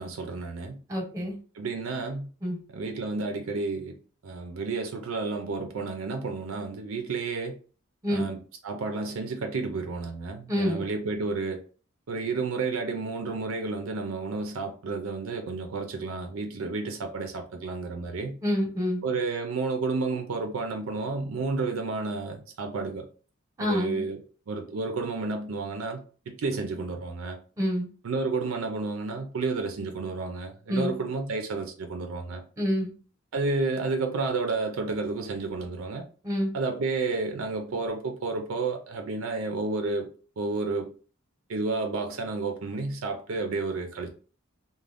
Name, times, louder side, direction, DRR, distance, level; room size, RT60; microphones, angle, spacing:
voice 1, 0.0-0.8 1.5-2.3 2.7-3.9 4.2-7.6 8.1-11.6 12.1-18.4 19.0-23.1 23.6-24.2 24.5-26.0 26.3-27.4 28.0-32.4 33.3-36.0 36.5-40.9 41.5-44.1, right 3 dB, 70° right, 0.4 m, -31 dB
voice 2, 0.9-1.3 2.4-2.6 8.0-8.3 10.5-10.8 18.4-19.0 23.6-24.0 27.6-27.9 30.7-31.0 32.6-32.9 36.2-36.5, equal, 15° right, 0.9 m, -27 dB
2.5 x 2.1 x 3.3 m
head